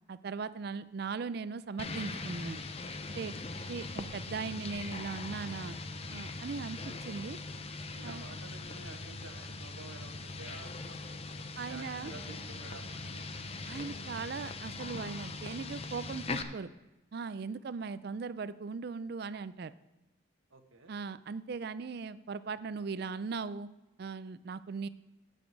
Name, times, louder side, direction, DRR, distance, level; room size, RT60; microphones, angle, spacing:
voice 1, 0.1-2.6 3.1-3.3 3.7-5.8 6.1-7.4 8.0-8.2 11.6-12.1 13.7-16.7 17.1-19.7 20.9-23.7 24.0-24.9, right 5 dB, 50° right, 15 dB, 0.4 m, -39 dB
sound 1, 1.8-16.4, left 3 dB, 30° left, 0.6 m, -41 dB
voice 2, 7.9-13.2 20.5-20.9, right 3 dB, 85° right, 4 dB, 1.4 m, -51 dB
9.4 x 5.2 x 8.0 m, 1.0 s
head